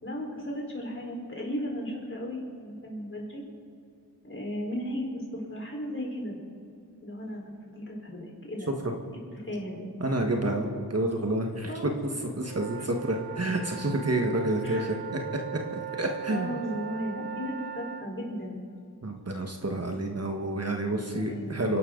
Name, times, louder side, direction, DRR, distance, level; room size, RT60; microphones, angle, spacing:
voice 1, 0.0-3.4 4.2-6.4 7.0-8.7 9.4-9.9 10.4-10.6 11.7-11.9 14.6-14.9 16.3-18.6 21.1-21.8, equal, 35° left, -2 dB, 4.5 m, -35 dB
voice 2, 10.0-11.9 12.4-15.2 15.7-16.6 19.0-21.8, right 1 dB, 40° right, 2 dB, 1.6 m, -29 dB
sound 1, 12.4-18.1, right 10 dB, 80° right, 0.8 m, -39 dB
29.0 x 11.5 x 4.0 m, 2.6 s
wide cardioid pair, 90°, 37 cm